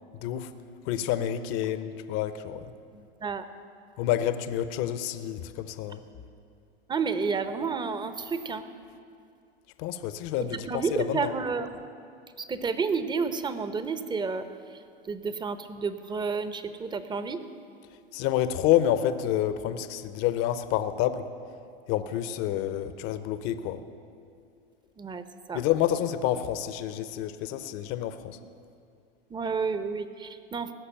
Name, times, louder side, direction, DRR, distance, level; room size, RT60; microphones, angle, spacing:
voice 1, 0.2-0.5 0.8-2.7 4.0-6.0 9.8-11.3 18.1-21.2 21.9-23.8 25.5-28.4, left 11 dB, 45° left, 11 dB, 0.9 m, -28 dB
voice 2, 2.9-3.4 6.9-8.7 10.4-11.8 12.4-17.5 25.0-25.2 25.5-25.6 29.3-30.7, right 5 dB, 15° right, 11 dB, 0.8 m, -31 dB
18.0 x 6.5 x 8.9 m, 2.4 s
hypercardioid pair, 105°, 30 cm